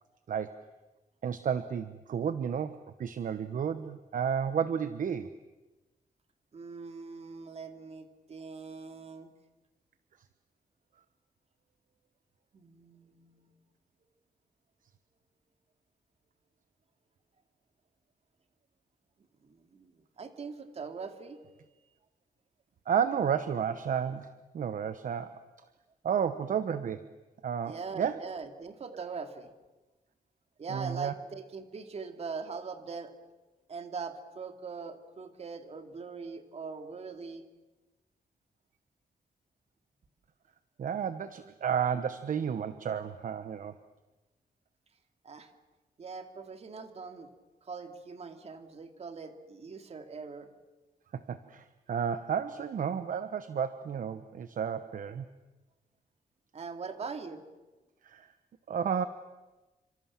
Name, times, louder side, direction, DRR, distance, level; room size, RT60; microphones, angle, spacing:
voice 1, 1.2-5.3 22.9-25.4 26.0-27.1 27.4-28.2 28.9-29.0 30.7-31.1 40.8-43.7 51.1-55.2 58.0-58.3 58.7-59.0, right 7 dB, 60° right, 11 dB, 1.0 m, -32 dB
voice 2, 6.5-9.3 12.5-13.6 19.4-21.5 27.6-29.5 30.6-33.1 33.7-37.4 45.2-45.5 46.0-47.3 47.6-50.5 56.5-57.4, right 5 dB, 40° right, 7 dB, 2.5 m, -42 dB
29.5 x 26.0 x 7.4 m, 1.2 s
wide cardioid pair, 175°, 16 cm